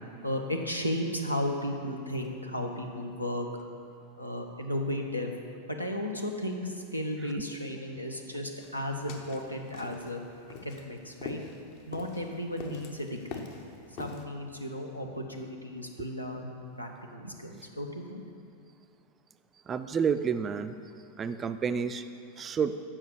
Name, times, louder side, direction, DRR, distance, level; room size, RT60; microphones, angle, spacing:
voice 1, 0.2-3.5 4.2-5.3 5.7-10.2 10.6-11.4 11.9-13.5 14.0-18.2, left 1 dB, 85° left, 2 dB, 0.8 m, -34 dB
sound 1, 8.6-14.2, left 5 dB, 45° left, 0.8 m, -44 dB
voice 2, 19.7-20.7 21.2-22.0 22.4-22.7, right 6 dB, 25° right, 11 dB, 0.3 m, -29 dB
7.3 x 5.8 x 6.7 m, 2.4 s
figure-of-eight pair, 90°, 0 cm